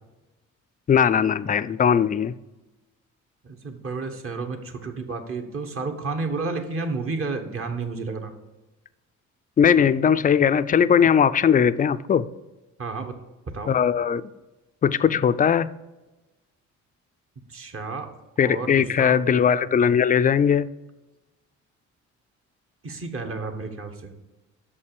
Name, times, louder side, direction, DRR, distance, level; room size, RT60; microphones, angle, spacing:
voice 1, 0.9-2.4 9.6-12.3 13.7-14.3 14.8-15.7 18.4-20.7, left 7 dB, 30° left, 0.4 m, -19 dB
voice 2, 3.4-8.3 12.8-13.1 13.5-13.7 17.5-18.1 18.4-19.2 22.8-24.1, right 3 dB, 45° right, 1.3 m, -31 dB
6.5 x 5.4 x 6.8 m
cardioid pair, 90°, 30 cm